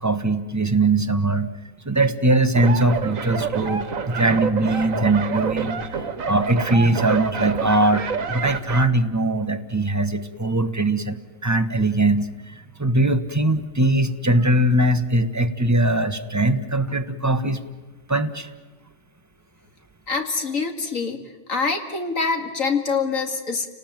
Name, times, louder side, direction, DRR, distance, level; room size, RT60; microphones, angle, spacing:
voice 1, 0.0-1.5 1.8-12.5 12.8-17.6 18.1-18.5, right 2 dB, 15° right, 7 dB, 1.1 m, -21 dB
sound 1, 2.5-8.9, right 5 dB, 80° right, 1.7 m, -28 dB
voice 2, 20.1-21.2 21.5-23.7, left 4 dB, 80° left, 5 dB, 2.6 m, -25 dB
29.5 x 19.0 x 9.0 m, 1.3 s
omnidirectional pair, 1.4 m